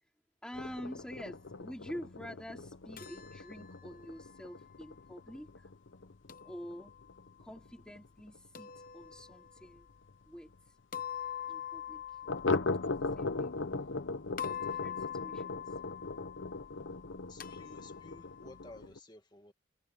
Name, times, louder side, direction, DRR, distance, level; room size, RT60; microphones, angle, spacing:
voice 1, 0.4-5.7 6.4-6.9 7.4-9.9 10.2-10.8 11.5-12.2 12.9-13.6 14.3-15.8, equal, 5° left, 3.2 m, -47 dB
sound 1, 0.5-9.8 10.1-10.2 10.5-10.6 11.0-11.1 12.3-19.0, left 3 dB, 70° left, 0.9 m, -39 dB
sound 2, 3.0-5.1 6.3-7.3 8.5-9.7 10.9-14.0 14.4-18.8, left 9 dB, 45° left, 1.1 m, -45 dB
voice 2, 17.3-19.5, left 2 dB, 20° left, 2.1 m, -54 dB
head